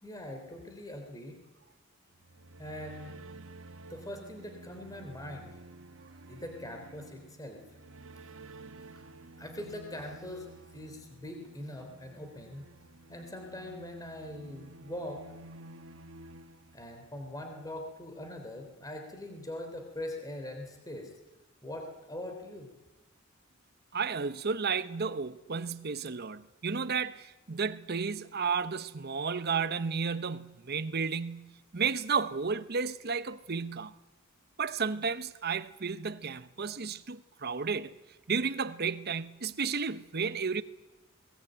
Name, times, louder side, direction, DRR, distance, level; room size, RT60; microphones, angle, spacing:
voice 1, 0.0-1.4 2.6-3.1 3.9-5.5 6.3-7.6 9.4-12.6 13.1-15.2 16.7-21.1 21.6-22.7, left 1 dB, 15° left, 3.4 m, -42 dB
sound 1, 2.1-17.3, right 2 dB, 70° right, 1.1 m, -51 dB
voice 2, 23.9-33.9 34.6-38.0 38.3-40.6, right 5 dB, 50° right, 0.9 m, -32 dB
21.5 x 19.0 x 9.0 m
head